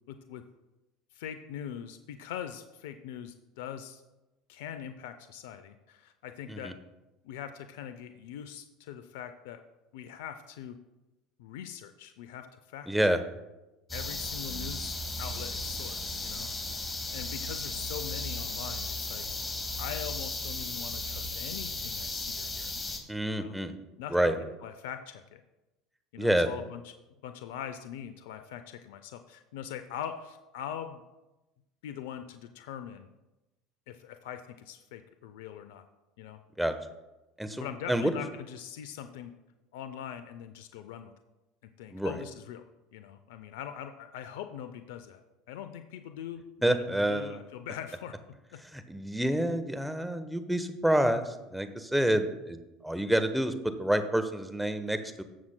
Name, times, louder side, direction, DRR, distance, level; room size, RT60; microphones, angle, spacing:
voice 1, 0.1-0.4 1.1-4.0 4.5-6.7 7.2-9.6 9.9-10.8 11.4-12.9 13.9-16.5 17.1-19.2 19.8-22.7 23.3-23.6 24.0-25.4 26.1-26.9 27.2-31.0 31.8-33.1 33.9-35.8 36.2-36.4 37.5-39.3 39.7-41.1 41.8-42.6 42.9-48.6, left 9 dB, 75° left, 9 dB, 0.5 m, -42 dB
voice 2, 12.9-13.2 23.1-23.7 24.1-24.4 26.2-26.5 36.6-36.7 37.4-38.2 41.9-42.1 46.6-47.4 48.7-55.2, right 1 dB, 5° right, 9 dB, 1.0 m, -28 dB
sound 1, 13.9-23.0, left 2 dB, 20° left, 1.9 m, -35 dB
18.5 x 7.2 x 2.2 m, 1.0 s
hypercardioid pair, 80°, 0 cm